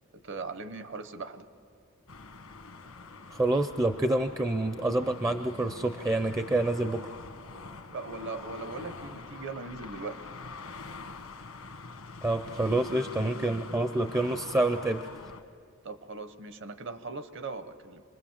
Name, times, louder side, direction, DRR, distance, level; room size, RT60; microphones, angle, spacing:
voice 1, 0.1-1.5 7.9-10.2 15.8-18.0, right 3 dB, 55° right, 10 dB, 1.0 m, -39 dB
sound 1, 2.1-15.4, left 4 dB, 85° left, 1.4 m, -45 dB
voice 2, 3.3-7.0 12.2-15.1, right 2 dB, 15° right, 8 dB, 0.5 m, -27 dB
26.5 x 20.5 x 7.3 m, 2.3 s
head